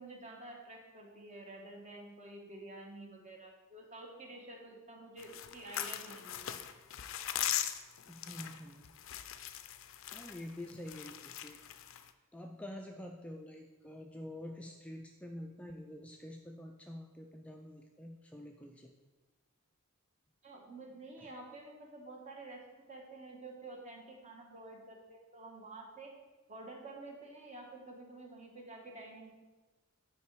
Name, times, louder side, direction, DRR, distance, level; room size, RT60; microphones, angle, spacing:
voice 1, 0.0-6.5 20.4-22.6 22.9-26.1 26.5-29.3, right 2 dB, 35° right, 0 dB, 1.3 m, -49 dB
sound 1, 5.2-12.1, left 11 dB, 70° left, 0.5 m, -40 dB
voice 2, 8.1-8.9 10.1-11.6 12.3-18.9 21.2-21.3, left 1 dB, 5° left, 2 dB, 0.4 m, -47 dB
8.5 x 4.8 x 4.7 m, 1.2 s
head